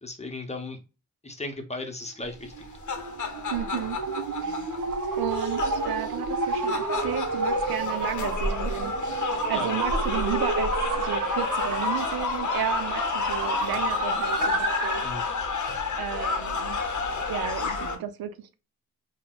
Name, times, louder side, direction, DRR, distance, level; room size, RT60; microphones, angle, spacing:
voice 1, 0.0-0.8 1.2-2.5 9.5-9.7 15.0-15.3, left 2 dB, 20° left, 0.7 m, -36 dB
sound 1, 2.4-15.1, right 3 dB, 65° right, 0.9 m, -30 dB
sound 2, 2.5-17.9, left 4 dB, 55° left, 0.7 m, -30 dB
voice 2, 3.5-4.0 4.4-4.6 5.2-15.0 15.5-16.8 17.3-18.5, right 10 dB, 90° right, 0.5 m, -33 dB
3.9 x 2.2 x 2.2 m
cardioid pair, 80°, 35 cm